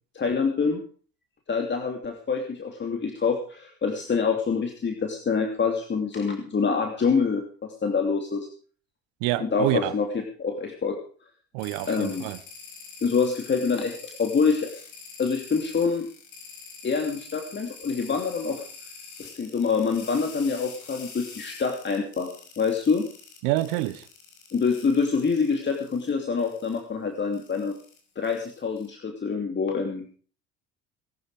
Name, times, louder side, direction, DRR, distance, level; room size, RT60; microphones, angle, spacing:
voice 1, 0.1-0.8 1.5-8.5 9.4-10.1 10.4-11.0 11.9-12.3 13.0-14.7 15.2-16.1 16.8-18.6 19.2-23.1 24.5-27.8 28.2-30.2, left 5 dB, 35° left, 2.9 m, -26 dB
voice 2, 9.2-9.9 11.5-12.4 23.4-24.0, right 17 dB, 70° right, 1.3 m, -27 dB
sound 1, 11.6-26.1 26.4-26.8 27.3-28.9, left 5 dB, 60° left, 5.8 m, -45 dB
20.0 x 11.5 x 5.0 m
hypercardioid pair, 65°, 33 cm